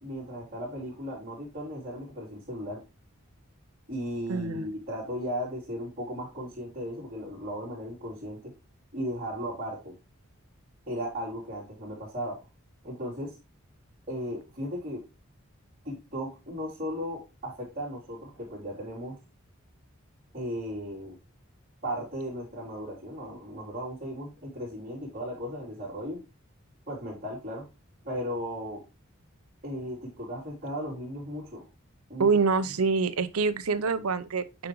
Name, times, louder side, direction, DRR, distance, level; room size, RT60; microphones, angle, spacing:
voice 1, 0.0-2.8 3.9-8.5 8.9-9.9 10.9-12.4 12.8-13.4 14.1-15.0 15.8-19.2 20.3-21.1 21.8-26.2 26.9-27.7 28.0-28.8 29.6-31.7 32.1-32.3, equal, 40° right, 3.3 m, -36 dB
voice 2, 4.3-4.7 32.2-34.7, right 4 dB, 85° right, 0.7 m, -26 dB
8.7 x 4.9 x 3.0 m
head